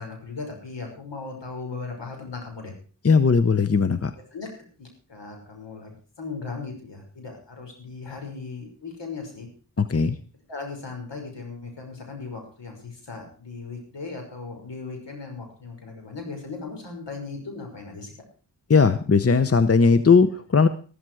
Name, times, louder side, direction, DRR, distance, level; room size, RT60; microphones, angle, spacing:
voice 1, 0.0-2.7 4.3-4.5 4.8-9.5 10.5-18.1, left 4 dB, 70° left, 2 dB, 5.9 m, -37 dB
voice 2, 3.0-4.1 9.8-10.1 18.7-20.7, left 5 dB, 30° left, 13 dB, 0.9 m, -18 dB
14.0 x 13.0 x 4.8 m, 0.39 s
cardioid pair, 55°, 45 cm